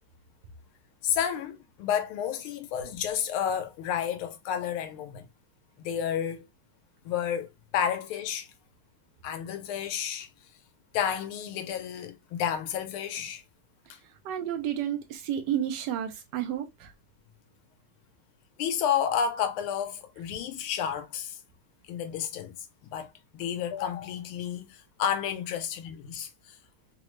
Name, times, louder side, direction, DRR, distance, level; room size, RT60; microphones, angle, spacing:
voice 1, 1.0-5.3 5.8-6.5 7.0-8.5 9.2-10.3 10.9-13.4 13.9-14.0 18.6-21.4 21.9-22.6 22.9-26.6, left 8 dB, 90° left, 1.5 m, -31 dB
voice 2, 14.2-16.9, right 10 dB, 75° right, 1.0 m, -31 dB
3.8 x 2.0 x 3.0 m
omnidirectional pair, 2.3 m